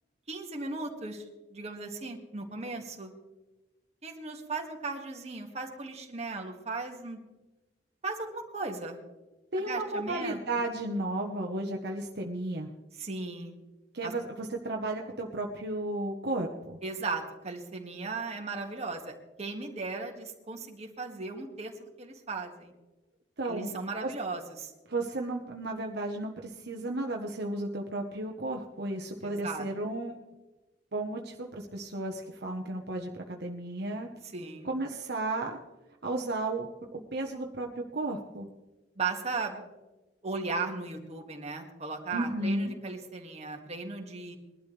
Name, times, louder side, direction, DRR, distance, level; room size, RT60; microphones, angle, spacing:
voice 1, 0.3-1.2 1.5-3.1 4.0-7.2 8.0-9.0 9.6-10.4 12.9-13.6 14.0-14.1 16.8-22.7 23.4-24.7 29.2-29.7 34.2-34.7 39.0-39.7 40.2-44.4, right 3 dB, 40° right, 2 dB, 2.1 m, -37 dB
voice 2, 9.5-12.7 13.9-16.8 23.4-23.8 24.0-24.1 24.9-30.2 30.9-34.1 34.6-35.6 36.0-38.5 42.1-42.7, right 2 dB, 65° right, 1 dB, 1.2 m, -34 dB
21.5 x 12.0 x 3.4 m, 1.1 s
head